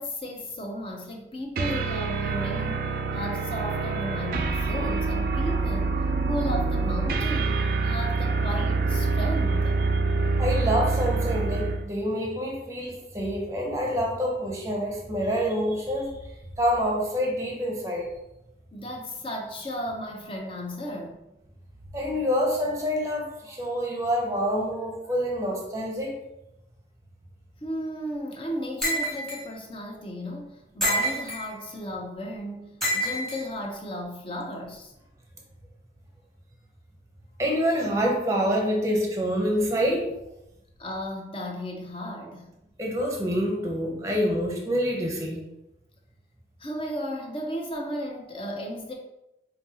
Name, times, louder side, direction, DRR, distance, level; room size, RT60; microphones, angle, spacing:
voice 1, 0.0-2.8 3.1-7.6 7.8-9.8 18.7-21.2 27.6-34.9 40.8-42.5 46.6-48.9, equal, 30° left, 1 dB, 0.6 m, -34 dB
sound 1, 1.6-11.9, right 3 dB, 55° right, 0.3 m, -26 dB
voice 2, 10.4-16.3 16.6-18.2 21.9-26.2 37.4-40.1 42.8-45.4, equal, 15° right, 0 dB, 0.7 m, -27 dB
sound 2, 28.8-29.4 30.8-31.5 32.8-33.4, equal, 5° left, 1.1 m, -27 dB
5.0 x 2.7 x 2.8 m, 0.89 s
head